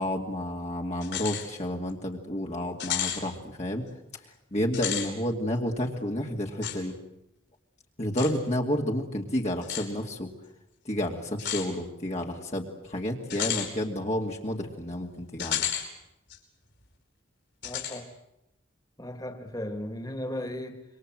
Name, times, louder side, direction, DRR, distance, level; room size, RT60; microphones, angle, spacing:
voice 1, 0.0-3.8 4.5-7.0 8.0-10.3 10.8-15.6, left 1 dB, 35° left, 0 dB, 2.5 m, -30 dB
sound 1, 1.0-1.5 1.9-2.0 2.8-3.2 4.6-5.1 6.6-6.8 8.2-8.3 9.6-9.9 11.4-11.7 13.3-13.7 15.4-15.9 16.3-16.4 17.6-18.0, left 9 dB, 60° left, 5.7 m, -31 dB
voice 2, 17.6-18.1 19.0-20.8, left 1 dB, 20° left, 6 dB, 2.7 m, -36 dB
27.0 x 24.5 x 7.7 m, 0.88 s
head